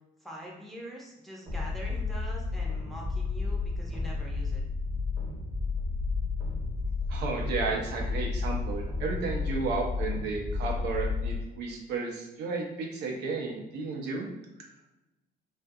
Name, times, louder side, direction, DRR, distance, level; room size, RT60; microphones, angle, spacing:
voice 1, 0.2-4.6, equal, ahead, -4 dB, 0.6 m, -44 dB
sound 1, 1.5-11.3, left 4 dB, 30° right, 0.8 m, -32 dB
voice 2, 7.1-14.3, right 4 dB, 80° right, 0 dB, 0.6 m, -33 dB
2.5 x 2.3 x 2.6 m, 0.96 s
cardioid pair, 110°, 17 cm